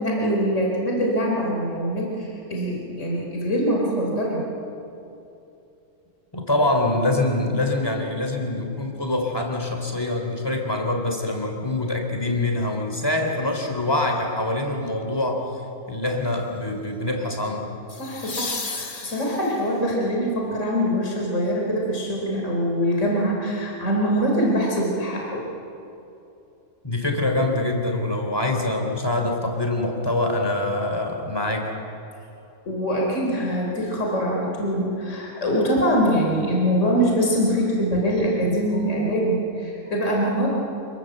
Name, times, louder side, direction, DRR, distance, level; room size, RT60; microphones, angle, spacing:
voice 1, 0.0-4.4 18.0-25.5 32.7-40.5, equal, 55° left, -2 dB, 4.3 m, -23 dB
voice 2, 6.3-15.6 15.9-17.7 26.8-31.7, left 2 dB, 15° left, 2 dB, 3.4 m, -24 dB
sound 1, 14.9-15.2 17.9-19.8 22.7-22.8, left 4 dB, 35° left, 1.5 m, -33 dB
27.0 x 22.0 x 7.9 m, 2.8 s
omnidirectional pair, 1.5 m